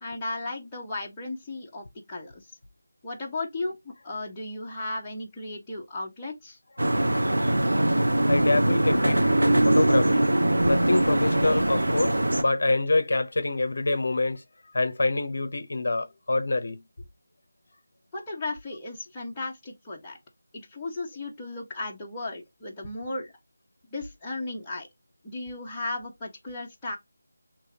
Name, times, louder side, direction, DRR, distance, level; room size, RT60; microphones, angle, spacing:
voice 1, 0.0-2.5 3.0-6.6 18.1-20.2 20.5-23.3 23.9-24.9 25.2-27.0, left 2 dB, 10° left, 1.0 m, -35 dB
sound 1, 6.8-12.4, right 1 dB, 90° right, 1.0 m, -22 dB
voice 2, 8.3-10.3 10.7-14.4 14.7-16.8, left 2 dB, 55° left, 0.7 m, -26 dB
5.5 x 3.0 x 2.7 m
figure-of-eight pair, 170°, 0 cm